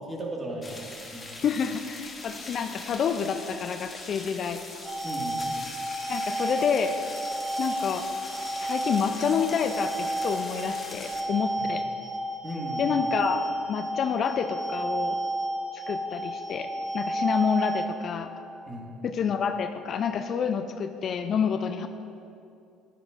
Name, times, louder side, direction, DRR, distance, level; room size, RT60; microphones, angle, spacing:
voice 1, 0.1-1.4 5.0-5.5 12.4-12.9 18.7-18.9, right 1 dB, 25° right, -1 dB, 1.6 m, -36 dB
sound 1, 0.6-11.2, left 2 dB, 25° left, 1.2 m, -41 dB
voice 2, 1.4-4.6 6.1-7.0 7.6-8.1 8.6-11.8 12.8-15.2 15.7-16.7 16.9-18.3 19.0-21.9, left 7 dB, 50° left, 8 dB, 0.4 m, -28 dB
sound 2, 4.8-17.9, right 1 dB, 10° right, 1.4 m, -31 dB
10.0 x 9.4 x 2.5 m, 2.6 s
hypercardioid pair, 70°, 0 cm